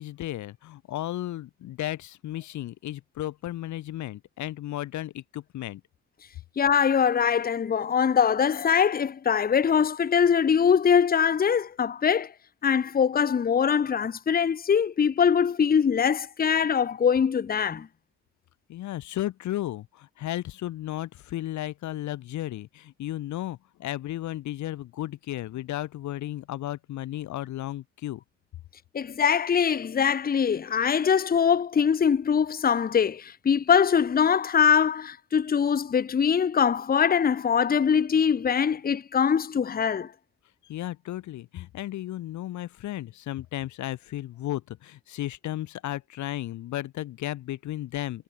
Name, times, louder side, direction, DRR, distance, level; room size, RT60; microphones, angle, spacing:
voice 1, 0.0-5.8 18.7-28.2 40.6-48.2, left 14 dB, 70° left, 0.8 m, -34 dB
voice 2, 6.6-12.3 12.6-17.9 28.9-40.1, left 7 dB, 30° left, 0.8 m, -23 dB
cardioid pair, 90°, 30 cm